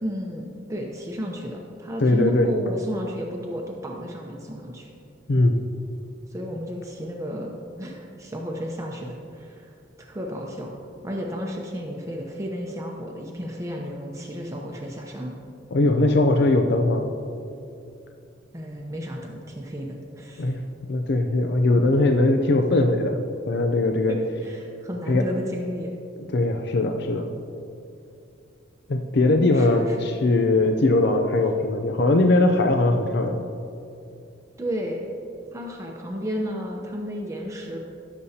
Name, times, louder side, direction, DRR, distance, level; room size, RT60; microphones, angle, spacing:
voice 1, 0.0-4.9 6.3-10.8 11.0-15.4 18.5-20.5 24.1-26.0 29.5-30.1 34.6-35.1 35.5-37.8, equal, 15° right, -1 dB, 0.7 m, -33 dB
voice 2, 2.0-2.5 5.3-5.6 15.7-17.0 20.4-20.6 20.9-23.2 23.5-24.1 25.1-25.2 26.3-27.3 28.9-33.5, left 2 dB, 65° left, 4 dB, 0.5 m, -20 dB
17.5 x 7.0 x 2.8 m, 2.6 s
head